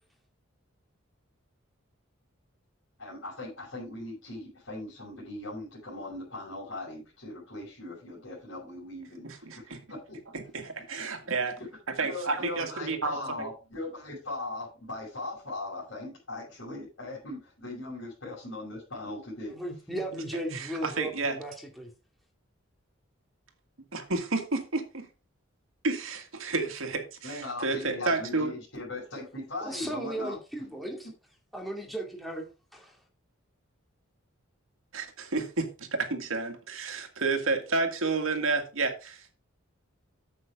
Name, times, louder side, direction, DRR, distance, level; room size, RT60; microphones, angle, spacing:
voice 1, 3.0-10.2 11.6-11.7 12.0-19.5 27.2-30.4, left 2 dB, 65° left, 5.7 m, -39 dB
voice 2, 9.2-9.8 10.3-11.6 11.9-13.5 20.3-21.4 23.9-25.1 25.8-28.5 34.9-39.3, right 3 dB, 75° right, 1.9 m, -31 dB
voice 3, 19.5-21.5 21.8-21.9 29.6-31.1 31.5-32.5 32.7-33.0, right 1 dB, ahead, 2.3 m, -36 dB
9.3 x 7.9 x 3.7 m
head